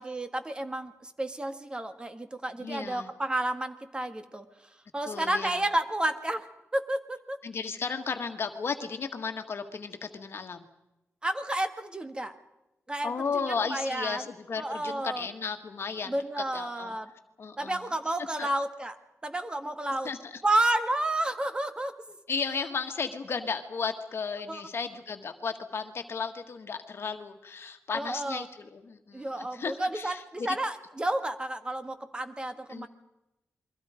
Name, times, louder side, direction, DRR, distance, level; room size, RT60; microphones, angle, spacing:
voice 1, 0.0-4.4 4.9-6.5 6.7-7.4 11.2-12.3 12.9-13.1 13.7-14.2 14.6-15.2 16.1-17.1 17.6-19.0 19.2-20.1 20.4-22.0 24.5-24.6 27.9-28.5 29.1-32.9, right 1 dB, 20° right, 8 dB, 1.7 m, -31 dB
voice 2, 2.6-3.1 5.0-5.6 7.4-10.6 13.0-16.2 16.5-16.9 17.4-17.9 18.4-18.5 20.0-20.4 22.1-30.6 32.7-32.9, left 5 dB, 55° left, 6 dB, 1.7 m, -34 dB
28.5 x 23.0 x 5.1 m, 0.94 s
wide cardioid pair, 125°, 5 cm